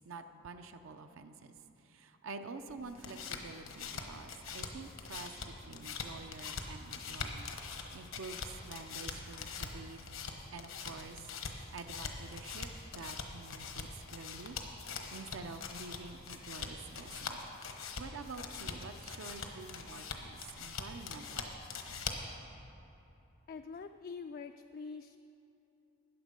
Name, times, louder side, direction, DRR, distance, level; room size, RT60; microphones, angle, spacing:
voice 1, 0.0-10.0 10.5-12.7 12.9-14.6 15.1-17.5 18.0-21.8, right 4 dB, 75° right, 7 dB, 0.6 m, -48 dB
sound 1, 2.8-22.4, left 4 dB, 80° left, 1.1 m, -43 dB
voice 2, 23.5-25.2, left 5 dB, 45° left, 7 dB, 0.3 m, -45 dB
13.5 x 9.5 x 5.2 m, 2.8 s
head